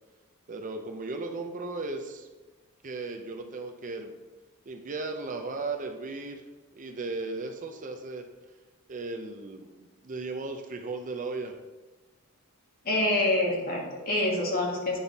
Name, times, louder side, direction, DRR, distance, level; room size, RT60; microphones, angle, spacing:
voice 1, 0.5-2.3 2.8-4.1 4.7-6.4 6.7-8.2 8.9-11.5, right 3 dB, 35° right, 4 dB, 0.6 m, -36 dB
voice 2, 12.8-15.0, left 1 dB, 40° left, -2 dB, 1.7 m, -26 dB
8.8 x 5.6 x 4.1 m, 1.2 s
head